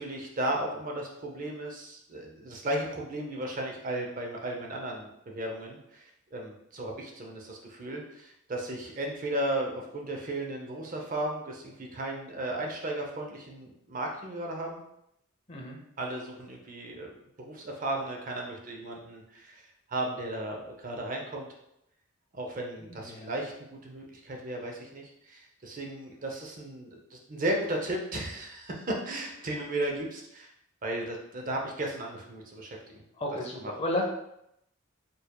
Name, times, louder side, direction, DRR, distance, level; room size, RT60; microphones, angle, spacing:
voice 1, 0.0-14.8 16.0-17.1 17.4-21.5 22.3-30.5 30.8-32.8 33.6-33.7, right 1 dB, 40° right, 0 dB, 0.6 m, -35 dB
voice 2, 15.5-15.8 22.8-23.4 33.2-34.0, left 1 dB, 30° left, 0 dB, 0.6 m, -33 dB
4.4 x 3.3 x 2.2 m, 0.79 s
head